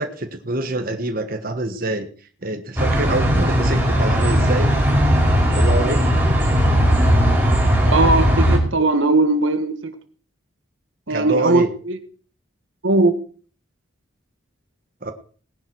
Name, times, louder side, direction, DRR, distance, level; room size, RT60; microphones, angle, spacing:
voice 1, 0.0-2.1 2.4-4.7 5.5-6.1 11.1-11.7 15.0-15.1, right 2 dB, 45° right, 5 dB, 1.4 m, -25 dB
sound 1, 2.8-8.6, equal, 10° right, 4.6 m, -17 dB
voice 2, 7.9-9.9 11.1-12.0 12.8-13.2, right 2 dB, 75° right, 9 dB, 1.5 m, -19 dB
18.0 x 11.0 x 4.7 m, 0.43 s
head